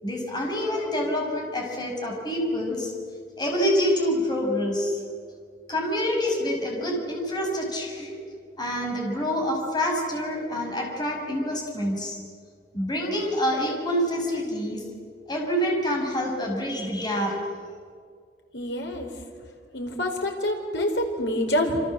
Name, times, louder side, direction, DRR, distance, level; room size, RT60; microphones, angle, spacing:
voice 1, 0.0-2.9 3.4-5.0 5.7-8.2 8.6-12.2 12.7-14.8 15.3-17.4, equal, 25° left, 1 dB, 5.9 m, -27 dB
voice 2, 18.5-19.1 19.7-21.8, left 1 dB, 80° left, 2 dB, 4.9 m, -26 dB
28.0 x 26.0 x 7.8 m, 2.1 s
head